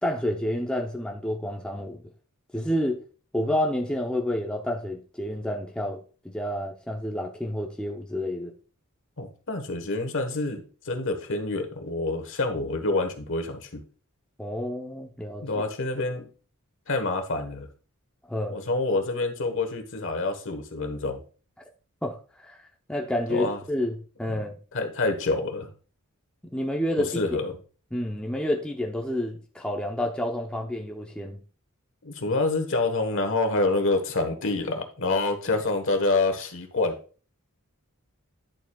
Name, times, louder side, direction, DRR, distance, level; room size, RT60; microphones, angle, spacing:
voice 1, 0.0-2.0 2.5-3.0 3.3-6.0 6.2-8.5 14.4-15.4 18.3-18.6 22.0-22.2 22.4-22.6 22.9-24.5 26.5-27.2 27.9-31.4, left 1 dB, 5° left, 0.7 m, -29 dB
voice 2, 9.2-13.8 15.4-16.3 16.9-17.7 18.5-21.2 23.3-23.6 24.7-25.7 27.0-27.6 32.0-36.9, left 2 dB, 60° left, 1.3 m, -27 dB
10.5 x 7.1 x 2.3 m
head